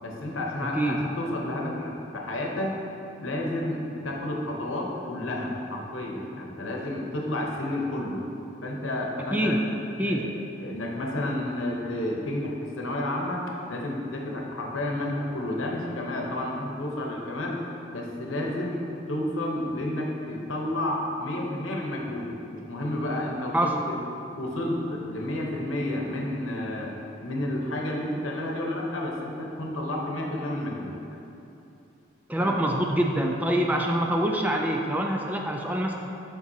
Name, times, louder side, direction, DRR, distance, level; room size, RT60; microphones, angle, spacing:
voice 1, 0.0-2.7 3.2-8.2 8.6-9.7 10.0-10.3 10.6-17.6 17.9-24.0 24.3-26.9 27.2-31.0 32.4-32.6, left 1 dB, 85° left, -1 dB, 0.9 m, -31 dB
voice 2, 0.7-1.1 9.3-9.6 10.0-10.3 23.5-23.7 32.3-35.9, right 1 dB, 10° right, 1 dB, 0.3 m, -25 dB
7.4 x 5.2 x 2.8 m, 2.8 s
head